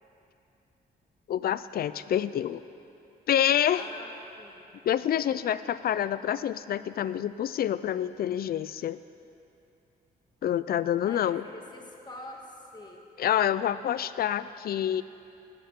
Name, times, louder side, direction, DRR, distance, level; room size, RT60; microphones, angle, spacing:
voice 1, 1.3-2.6 3.3-3.8 4.8-9.0 10.4-11.4 13.2-15.0, left 10 dB, 60° left, 15 dB, 0.4 m, -27 dB
voice 2, 3.7-4.7 11.0-13.0, left 1 dB, 25° left, 0 dB, 1.8 m, -45 dB
18.0 x 11.5 x 3.7 m, 2.7 s
cardioid pair, 100°, 17 cm